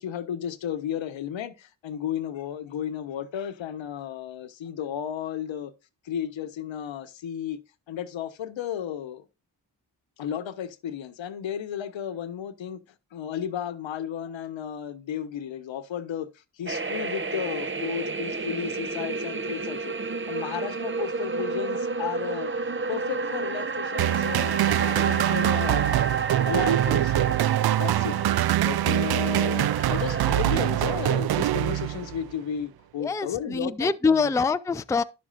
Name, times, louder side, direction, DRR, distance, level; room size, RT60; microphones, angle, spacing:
voice 1, 0.0-5.7 6.0-7.6 7.9-9.2 10.2-12.8 13.1-16.3 16.6-19.9 20.3-22.6 22.9-25.9 26.5-27.3 27.7-28.2 28.6-34.3, left 9 dB, 70° left, 1.1 m, -33 dB
sound 1, 16.7-30.4, right 4 dB, 25° right, 0.9 m, -31 dB
sound 2, 24.0-32.3, right 13 dB, 55° right, 0.5 m, -24 dB
voice 2, 33.0-35.0, left 5 dB, 5° left, 0.4 m, -24 dB
10.5 x 7.5 x 2.5 m
supercardioid pair, 55°, 48 cm